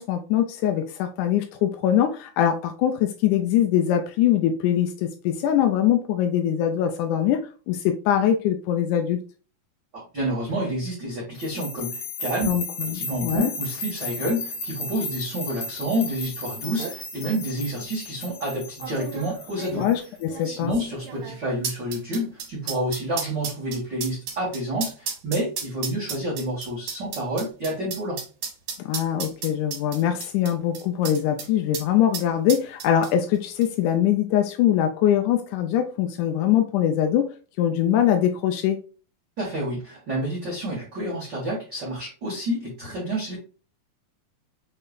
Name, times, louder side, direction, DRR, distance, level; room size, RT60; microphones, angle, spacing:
voice 1, 0.0-9.2 12.5-13.5 19.7-20.8 28.8-37.3 37.6-38.8, left 10 dB, 85° left, 1.8 m, -22 dB
voice 2, 10.1-12.5 12.8-19.8 20.4-28.2 39.4-43.4, right 1 dB, 45° right, 1.5 m, -29 dB
sound 1, 11.4-20.4, left 3 dB, 65° left, 1.3 m, -35 dB
sound 2, 16.2-16.3 16.6-17.0 17.8-17.9 18.8-31.5 31.7-31.9 32.1-33.4 33.6-33.7, right 6 dB, 70° right, 2.8 m, -34 dB
6.6 x 3.2 x 2.4 m
omnidirectional pair, 4.1 m